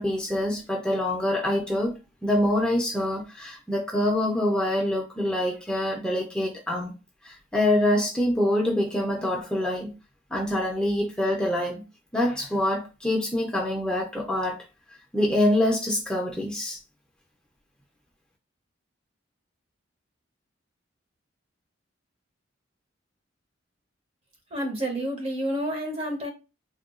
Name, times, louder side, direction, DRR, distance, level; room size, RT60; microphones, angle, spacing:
voice 1, 0.0-6.9 7.2-9.9 10.3-11.8 12.1-14.6 15.1-16.8, left 1 dB, 5° left, 0.4 m, -25 dB
voice 2, 24.5-26.3, equal, 30° right, 0.7 m, -29 dB
3.6 x 2.2 x 2.3 m
head